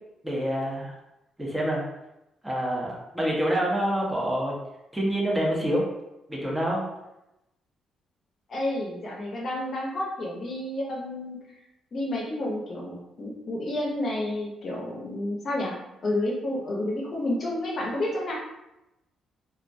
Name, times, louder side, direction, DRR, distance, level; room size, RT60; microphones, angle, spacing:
voice 1, 0.2-0.9 1.4-1.8 2.4-4.5 4.9-5.9 6.3-6.8, equal, 10° right, -3 dB, 0.6 m, -26 dB
voice 2, 8.5-11.4 11.9-15.7 16.0-18.3, left 1 dB, 50° left, -2 dB, 0.6 m, -30 dB
2.3 x 2.0 x 2.6 m, 0.92 s
cardioid pair, 90°, 0 cm